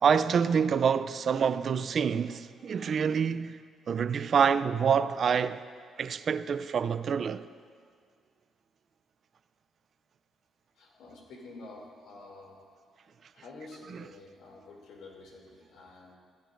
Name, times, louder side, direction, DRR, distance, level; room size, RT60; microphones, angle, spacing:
voice 1, 0.0-3.6 3.9-5.6 6.0-7.4, right 7 dB, 55° right, 0.4 m, -26 dB
voice 2, 10.8-12.6 13.3-16.2, left 2 dB, 80° left, 2.6 m, -49 dB
16.0 x 15.0 x 2.6 m
cardioid pair, 90°, 0 cm